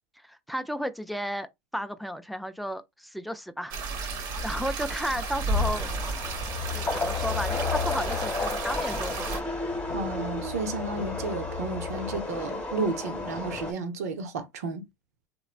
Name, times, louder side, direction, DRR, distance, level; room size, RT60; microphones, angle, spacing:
voice 1, 0.2-1.5 1.7-5.9 6.7-9.4, equal, ahead, 0.4 m, -34 dB
sound 1, 3.7-9.4, right 4 dB, 60° right, 1.1 m, -33 dB
sound 2, 5.5-8.4 9.0-12.2, left 8 dB, 55° left, 0.7 m, -35 dB
sound 3, 5.5-13.7, left 2 dB, 20° left, 1.1 m, -33 dB
voice 2, 9.9-14.8, right 3 dB, 90° right, 0.7 m, -32 dB
3.1 x 2.1 x 2.4 m
hypercardioid pair, 95°, 8 cm